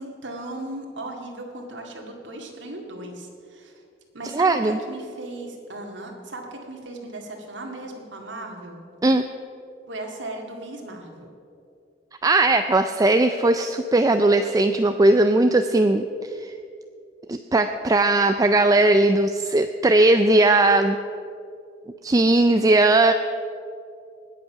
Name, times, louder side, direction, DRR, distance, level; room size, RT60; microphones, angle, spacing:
voice 1, 0.0-3.7 4.1-8.8 9.9-11.3, right 2 dB, 90° right, 1 dB, 2.1 m, -37 dB
voice 2, 4.3-4.8 9.0-9.2 12.2-16.0 16.4-16.5 17.3-21.0 22.0-23.1, right 2 dB, 20° right, 8 dB, 0.4 m, -18 dB
20.0 x 8.3 x 5.8 m, 2.5 s
head